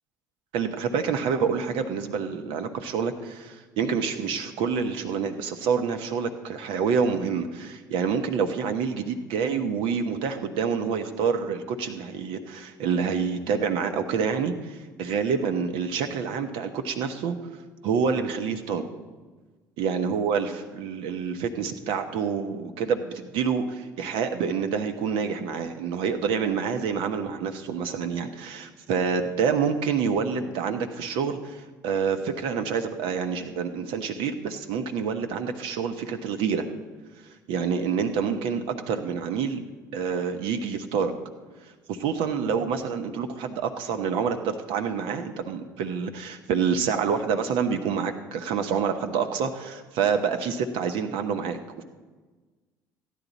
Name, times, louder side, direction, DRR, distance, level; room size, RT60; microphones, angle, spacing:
voice 1, 0.5-17.3 17.8-18.8 19.8-36.6 37.5-39.6 39.9-41.1 41.9-51.8, right 6 dB, 65° right, 7 dB, 1.0 m, -27 dB
14.5 x 10.5 x 4.0 m, 1.3 s
hypercardioid pair, 60°, 10 cm